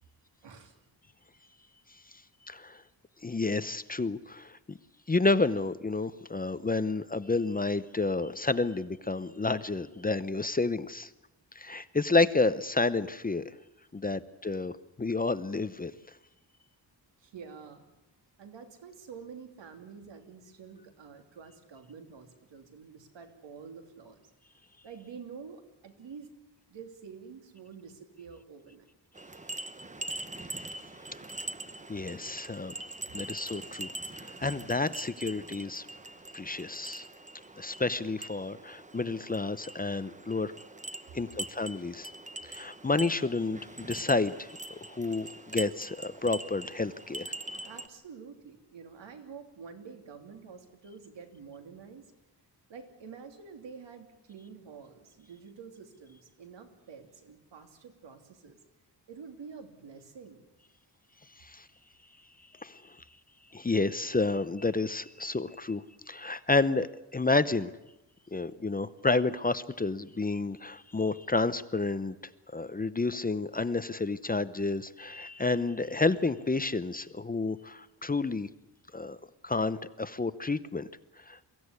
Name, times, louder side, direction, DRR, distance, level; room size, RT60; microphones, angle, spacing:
voice 1, 0.4-0.7 17.2-17.9 18.4-24.2 24.8-26.3 26.7-28.8 47.6-52.1 52.7-58.6 59.1-60.4, right 6 dB, 85° right, 6 dB, 2.9 m, -48 dB
voice 2, 1.9-2.2 2.5-2.8 3.2-4.8 5.1-11.1 11.5-13.6 13.9-14.7 15.0-15.9 31.9-32.7 33.1-35.9 36.3-37.1 37.6-40.5 41.1-42.1 42.4-47.3 61.4-61.7 62.6-63.0 63.5-67.7 68.3-78.5 78.9-79.2 79.4-80.9 81.2-81.4, left 3 dB, 20° left, 14 dB, 0.7 m, -30 dB
sound 1, 29.1-47.9, right 2 dB, 15° right, 1.0 m, -43 dB
23.0 x 16.0 x 9.7 m, 0.96 s
wide cardioid pair, 120°, 42 cm